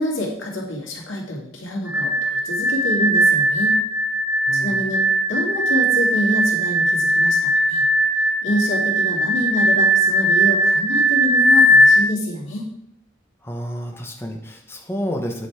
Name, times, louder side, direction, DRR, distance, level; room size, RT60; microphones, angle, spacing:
voice 1, 0.0-3.8 4.5-5.0 5.3-7.8 8.4-12.7, left 1 dB, 80° left, -2 dB, 2.3 m, -26 dB
sound 1, 1.9-12.0, right 1 dB, 10° right, 0.7 m, -18 dB
voice 2, 4.5-4.8 13.4-15.5, equal, 10° left, 2 dB, 1.0 m, -30 dB
9.1 x 5.4 x 4.8 m, 0.75 s
head